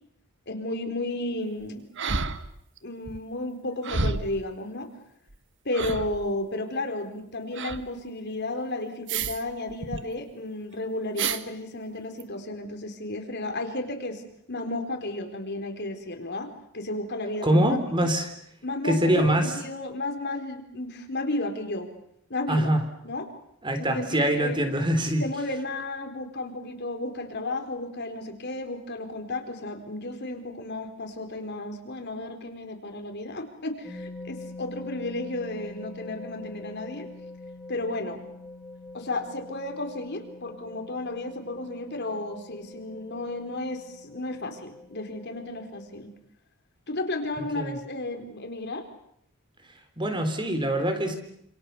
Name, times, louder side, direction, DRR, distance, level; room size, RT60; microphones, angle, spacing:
voice 1, 0.5-1.8 2.8-4.9 5.6-14.2 14.5-17.8 18.6-21.9 22.3-22.7 23.0-23.3 23.8-24.7 25.2-37.1 37.7-38.2 38.9-46.1 46.9-48.9, left 2 dB, 50° left, 6 dB, 4.3 m, -33 dB
sound 1, 2.0-2.8 3.1-3.2 3.8-4.4 5.3-5.4 5.7-6.3 7.5-7.9 9.1-9.4 9.7-10.0 11.2-11.4 12.2-12.3, right 4 dB, 55° right, 1.5 m, -30 dB
voice 2, 17.4-18.3 18.8-19.5 22.5-22.8 23.6-25.2 47.4-47.8 50.0-51.1, right 1 dB, 20° right, 7 dB, 3.7 m, -24 dB
sound 2, 33.8-46.0, left 2 dB, 5° right, 6.5 m, -44 dB
28.5 x 27.5 x 7.0 m, 0.72 s
head